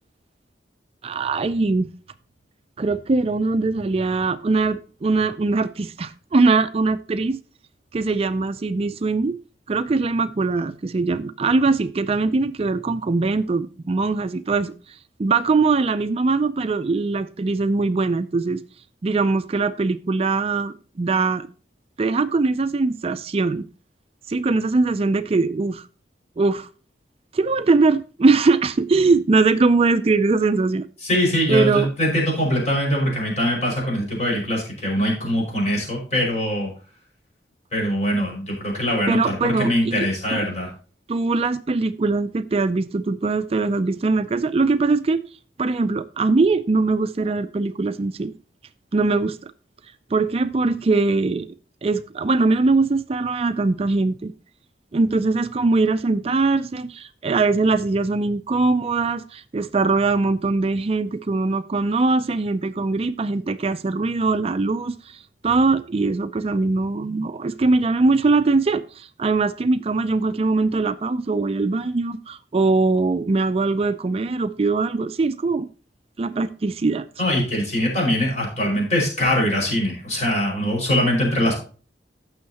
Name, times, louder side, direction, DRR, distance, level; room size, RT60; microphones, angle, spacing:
voice 1, 1.0-1.9 2.8-7.4 7.9-9.4 9.7-18.6 19.0-21.5 22.0-23.6 24.3-25.9 26.4-26.7 27.3-30.9 31.5-31.9 39.1-40.5 41.1-45.2 45.6-48.3 48.9-49.5 50.1-51.5 51.8-54.3 54.9-75.7 76.2-77.1, right 3 dB, 35° right, 0.4 m, -21 dB
voice 2, 31.0-36.7 37.7-40.7 77.2-81.6, equal, 40° left, 5.4 m, -22 dB
16.0 x 6.4 x 2.8 m
head